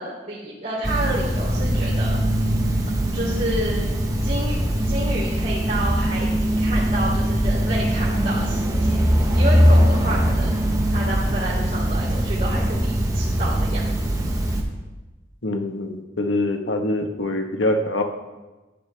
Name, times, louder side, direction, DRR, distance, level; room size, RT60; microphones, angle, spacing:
voice 1, 0.0-2.2 3.1-3.8 4.2-4.6 4.9-9.0 9.3-10.5 10.9-13.9, right 1 dB, 45° right, -8 dB, 3.0 m, -30 dB
sound 1, 0.8-14.6, equal, 20° right, 1.1 m, -21 dB
voice 2, 15.4-18.0, left 2 dB, 85° left, 4 dB, 1.3 m, -24 dB
13.5 x 10.5 x 3.4 m, 1.1 s
head